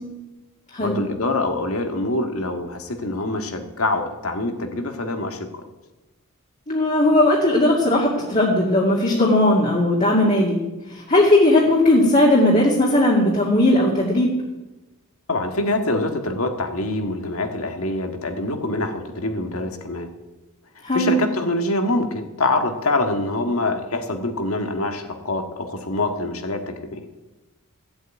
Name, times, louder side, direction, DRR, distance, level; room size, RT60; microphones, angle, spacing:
voice 1, 0.8-5.6 15.3-20.1 20.9-27.1, left 2 dB, 65° left, 6 dB, 1.8 m, -25 dB
voice 2, 6.7-10.6 10.9-14.3 20.8-21.2, left 1 dB, 35° left, -4 dB, 2.4 m, -17 dB
15.5 x 8.1 x 9.2 m, 1.1 s
head